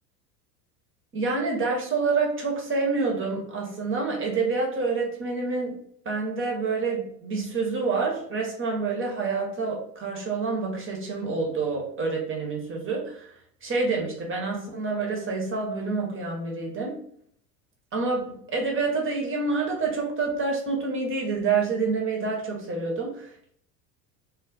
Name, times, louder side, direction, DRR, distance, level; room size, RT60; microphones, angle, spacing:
voice 1, 1.1-5.8 6.0-13.3 13.6-17.0 17.9-23.5, right 4 dB, 25° right, 0 dB, 0.9 m, -27 dB
2.3 x 2.0 x 3.8 m, 0.65 s
hypercardioid pair, 80°, 48 cm